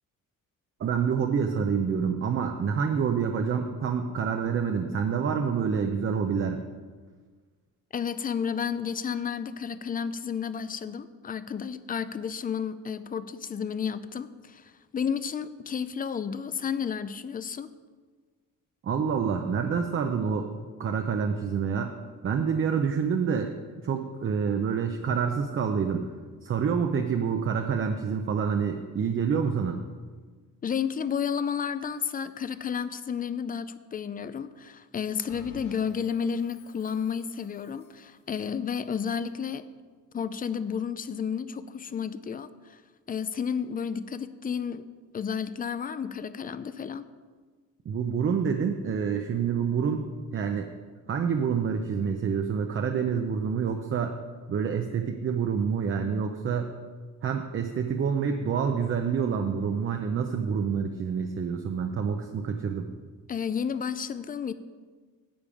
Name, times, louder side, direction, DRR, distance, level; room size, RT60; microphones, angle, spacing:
voice 1, 0.8-6.6 18.8-20.5 20.8-21.9 22.2-23.5 23.8-26.1 26.4-29.8 47.9-50.7 51.1-54.2 54.5-56.7 57.2-62.9, right 6 dB, 40° right, 5 dB, 0.7 m, -27 dB
voice 2, 7.9-17.7 30.6-39.6 40.1-42.8 43.1-44.8 45.1-47.1 63.3-64.5, left 7 dB, 25° left, 14 dB, 0.4 m, -32 dB
Bell, 35.3-38.1, left 4 dB, 65° left, 2.6 m, -52 dB
10.5 x 5.3 x 8.4 m, 1.5 s
cardioid pair, 155°, 33 cm